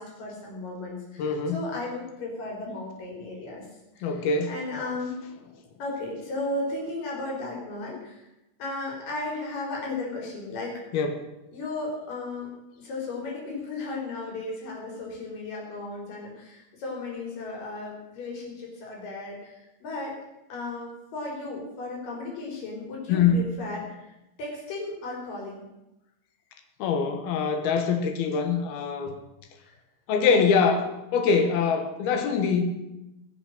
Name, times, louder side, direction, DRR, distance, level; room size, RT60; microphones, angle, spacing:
voice 1, 0.0-3.7 3.9-5.2 5.8-8.3 8.6-10.8 11.5-12.5 12.8-20.1 20.5-24.1 24.4-25.7 29.6-29.8, left 2 dB, 65° left, -2 dB, 5.6 m, -35 dB
voice 2, 1.2-1.6 4.0-4.5 10.9-11.2 23.1-23.4 26.8-29.1 30.1-32.6, left 5 dB, 85° left, 6 dB, 3.3 m, -24 dB
20.0 x 7.1 x 6.6 m, 0.93 s
omnidirectional pair, 4.3 m